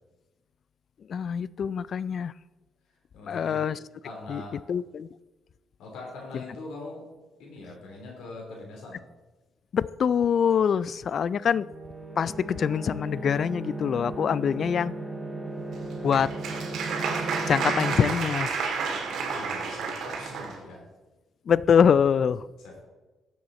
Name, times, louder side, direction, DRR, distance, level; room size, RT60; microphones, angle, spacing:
voice 1, 1.1-2.3 3.3-3.8 4.3-4.4 4.7-5.1 6.3-6.4 9.7-11.7 12.2-15.0 16.0-16.3 17.5-18.5 21.5-22.4, left 7 dB, 55° left, 19 dB, 0.3 m, -24 dB
voice 2, 3.1-3.6 4.0-4.6 5.8-7.0 7.4-9.0 19.1-20.8 22.6-22.9, left 2 dB, 85° left, -2 dB, 3.5 m, -42 dB
sound 1, 11.5-18.1, right 2 dB, ahead, 1.7 m, -36 dB
Applause, 15.7-20.6, right 5 dB, 70° right, 1.9 m, -31 dB
12.0 x 7.7 x 4.2 m, 1.2 s
cardioid pair, 90°, 0 cm